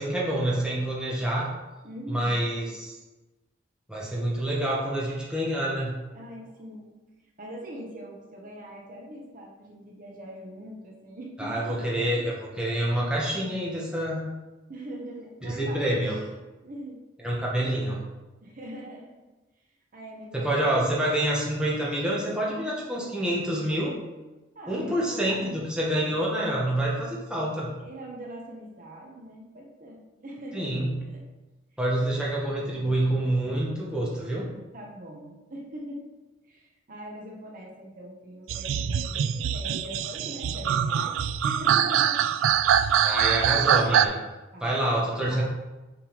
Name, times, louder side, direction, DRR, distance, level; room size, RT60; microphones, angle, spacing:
voice 1, 0.0-1.5 2.1-3.0 3.9-5.9 11.4-14.2 15.4-16.2 17.2-18.0 20.3-24.0 24.7-27.7 30.5-31.0 31.8-34.5 43.0-44.2 44.6-45.4, right 1 dB, 5° right, -5 dB, 1.0 m, -27 dB
voice 2, 1.8-2.4 6.1-6.9 7.4-12.1 14.7-15.9 16.4-17.0 18.4-19.1 19.9-21.0 24.5-25.6 27.8-30.8 31.1-31.2 34.7-36.0 36.5-42.2 42.6-43.0 44.5-44.8, equal, 40° right, -1 dB, 1.0 m, -42 dB
sound 1, 38.5-44.1, right 9 dB, 75° right, 0.3 m, -24 dB
5.8 x 3.6 x 5.0 m, 1.1 s
head